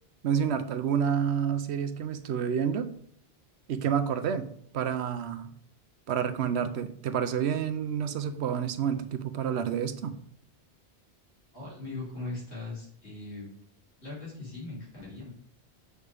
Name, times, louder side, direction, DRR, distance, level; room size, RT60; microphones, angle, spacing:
voice 1, 0.2-2.9 3.7-4.5 4.7-5.5 6.1-10.2, right 8 dB, 85° right, 10 dB, 0.9 m, -29 dB
voice 2, 11.5-13.5 14.0-15.3, left 2 dB, 90° left, -5 dB, 3.1 m, -39 dB
6.6 x 5.5 x 3.3 m, 0.66 s
omnidirectional pair, 1.1 m